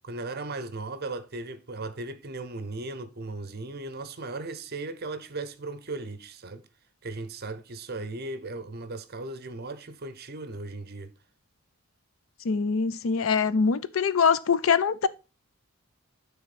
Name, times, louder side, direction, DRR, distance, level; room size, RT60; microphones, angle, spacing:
voice 1, 0.0-6.7 7.0-11.1, right 2 dB, 45° right, 0.7 m, -37 dB
voice 2, 12.4-15.1, left 5 dB, 65° left, 0.5 m, -23 dB
9.5 x 3.6 x 4.2 m
head